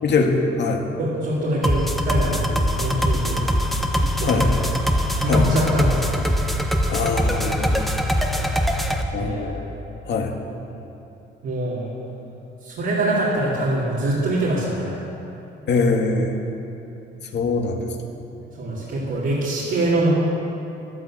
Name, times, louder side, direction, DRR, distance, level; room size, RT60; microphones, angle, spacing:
voice 1, 0.0-0.8 4.2-4.5 5.2-5.5 6.9-7.9 9.1-9.7 10.1-10.3 15.7-16.4 17.3-18.1, left 3 dB, 60° left, 2 dB, 2.0 m, -22 dB
voice 2, 1.0-3.5 3.9-4.6 5.1-6.3 9.1-9.5 11.4-11.9 12.6-15.0 18.6-20.1, right 1 dB, 75° right, -9 dB, 3.7 m, -24 dB
sound 1, 1.6-9.0, equal, ahead, 1.3 m, -22 dB
13.5 x 11.5 x 7.8 m, 2.8 s
cardioid pair, 90°, 20 cm